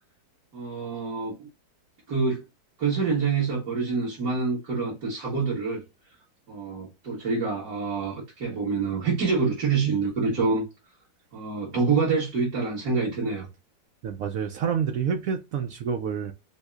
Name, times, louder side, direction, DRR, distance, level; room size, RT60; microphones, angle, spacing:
voice 1, 0.5-1.5 2.1-2.4 2.8-5.8 6.5-10.6 11.3-13.5, right 4 dB, 55° right, 1.8 m, -26 dB
voice 2, 14.0-16.3, right 7 dB, 90° right, 0.7 m, -28 dB
5.3 x 2.1 x 2.3 m
omnidirectional pair, 2.0 m